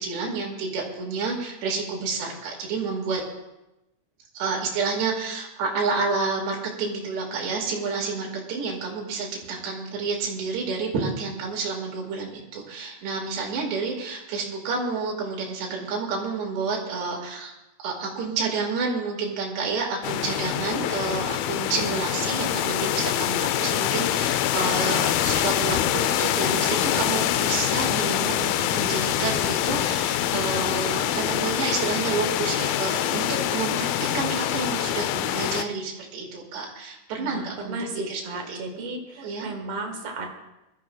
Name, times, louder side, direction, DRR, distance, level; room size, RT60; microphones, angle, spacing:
voice 1, 0.0-3.2 4.3-17.5 17.8-38.2 38.5-38.9 39.2-39.5, right 4 dB, 85° right, -1 dB, 4.0 m, -29 dB
sound 1, 20.0-35.7, left 12 dB, 90° left, 2.1 m, -25 dB
voice 2, 37.2-40.3, right 2 dB, 60° right, 2 dB, 1.5 m, -34 dB
23.0 x 13.0 x 2.3 m, 0.96 s
omnidirectional pair, 4.8 m